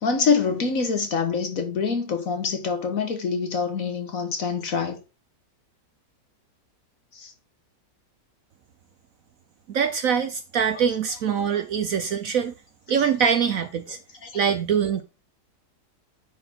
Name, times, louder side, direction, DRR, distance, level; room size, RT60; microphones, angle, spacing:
voice 1, 0.0-5.0 7.1-7.3 14.2-14.3, left 5 dB, 50° left, 1.6 m, -25 dB
voice 2, 9.7-12.5 12.9-14.0 14.3-15.0, right 7 dB, 60° right, 1.0 m, -23 dB
10.0 x 4.6 x 3.6 m
omnidirectional pair, 1.9 m